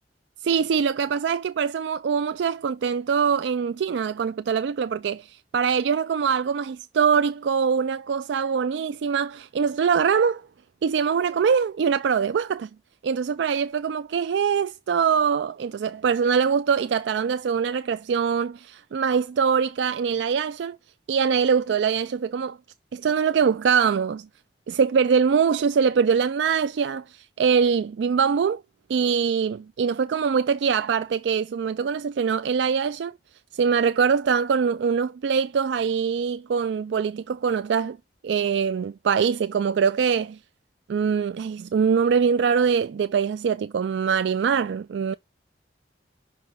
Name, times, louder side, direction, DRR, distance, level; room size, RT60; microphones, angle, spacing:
voice 1, 0.4-10.4 10.8-12.7 13.0-20.8 21.1-22.6 22.9-24.3 24.7-28.6 28.9-33.1 33.5-38.0 38.2-40.4 40.9-45.1, right 6 dB, 80° right, 0.3 m, -23 dB
5.7 x 4.8 x 3.8 m
head